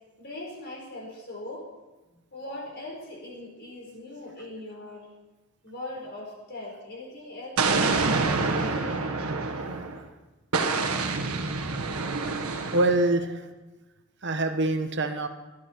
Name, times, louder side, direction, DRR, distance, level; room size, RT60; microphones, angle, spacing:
voice 1, 0.2-1.7 2.3-5.1 5.6-9.2 13.2-13.3, left 2 dB, 45° left, -3 dB, 4.6 m, -40 dB
Explosion, 7.6-10.0 10.5-13.1, right 3 dB, 75° right, 1.5 m, -27 dB
voice 2, 12.7-13.2 14.2-15.3, right 2 dB, 50° right, 7 dB, 1.1 m, -24 dB
17.0 x 12.0 x 4.5 m, 1.1 s
head